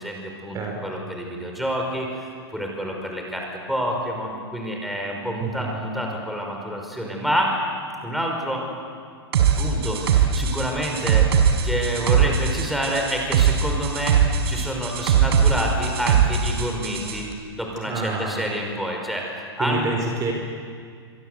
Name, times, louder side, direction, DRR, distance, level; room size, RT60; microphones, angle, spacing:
voice 1, 0.0-7.5 8.0-8.7 9.6-17.3 17.6-19.3 19.6-19.9, equal, ahead, 0 dB, 5.6 m, -28 dB
sound 1, 9.3-17.2, right 7 dB, 70° right, 4.7 m, -21 dB
voice 2, 17.9-18.5 19.6-20.3, right 3 dB, 25° right, 2 dB, 4.6 m, -28 dB
27.5 x 24.0 x 8.2 m, 2.1 s
hypercardioid pair, 130°, 14 cm